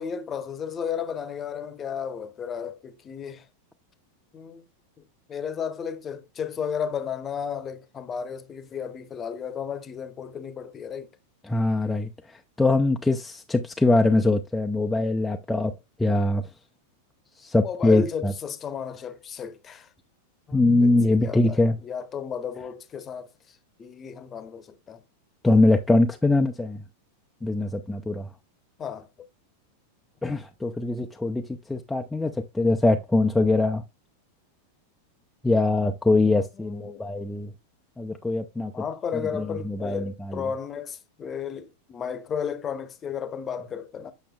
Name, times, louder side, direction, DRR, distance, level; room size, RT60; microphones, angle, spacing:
voice 1, 0.0-3.4 4.3-4.6 5.0-5.1 5.3-11.1 17.6-19.9 20.5-23.3 23.8-25.0 28.8-29.1 36.6-37.0 38.7-44.1, left 7 dB, 25° left, 0.9 m, -33 dB
voice 2, 11.4-15.7 16.0-16.5 17.4-18.3 20.5-21.8 25.4-26.8 27.4-28.3 30.2-31.4 31.7-33.8 35.4-37.5 38.0-38.7 39.3-40.5, left 2 dB, 5° left, 0.5 m, -23 dB
8.4 x 6.2 x 2.3 m
figure-of-eight pair, 90°, 0 cm